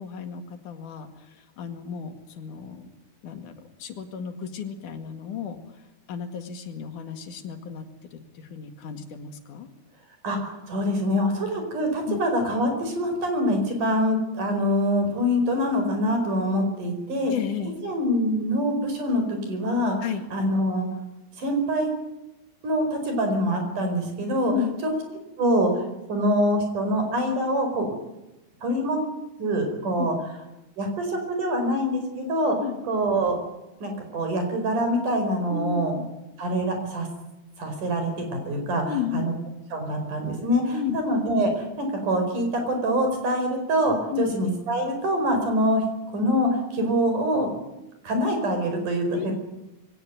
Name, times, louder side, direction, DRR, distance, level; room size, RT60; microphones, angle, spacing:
voice 1, 0.0-2.9 3.2-3.5 3.8-5.6 6.1-9.7 11.3-11.4 12.1-12.2 17.2-17.8 20.0-20.3 24.5-24.8 30.0-30.1 32.6-32.8 35.5-36.1 38.9-39.3 40.7-41.0 44.1-44.3 49.1-49.3, left 9 dB, 80° left, 6 dB, 3.5 m, -33 dB
voice 2, 10.2-17.3 17.8-20.0 20.3-20.9 21.4-21.9 22.6-24.5 24.8-24.9 25.4-25.8 26.1-27.9 28.6-29.0 29.4-30.1 30.8-32.6 32.9-33.4 33.8-35.9 36.4-37.1 37.6-38.8 39.1-39.3 39.7-45.8 46.1-47.5 48.0-49.3, equal, 90° right, 5 dB, 6.4 m, -25 dB
22.5 x 17.5 x 9.2 m, 0.96 s
omnidirectional pair, 3.5 m